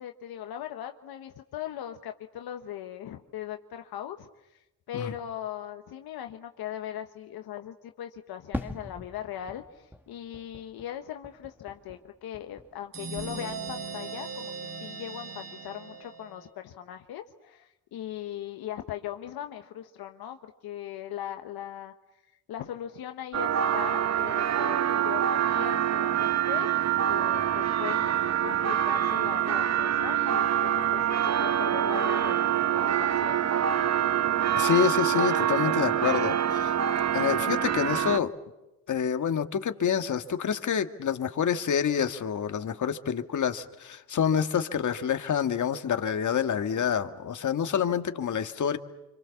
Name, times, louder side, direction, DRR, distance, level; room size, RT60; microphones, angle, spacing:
voice 1, 0.0-21.9 22.5-33.6, left 11 dB, 75° left, 6 dB, 1.3 m, -39 dB
Fireworks, 8.5-12.9 13.1-13.9, equal, 5° right, 2.1 m, -42 dB
sound 1, 12.9-16.5, right 5 dB, 60° right, 4.9 m, -39 dB
sound 2, 23.3-38.2, right 10 dB, 45° right, 1.0 m, -25 dB
voice 2, 34.5-36.8 37.1-38.3 38.9-48.8, left 8 dB, 50° left, 8 dB, 1.8 m, -27 dB
26.5 x 25.5 x 7.1 m, 0.97 s
supercardioid pair, 70°, 38 cm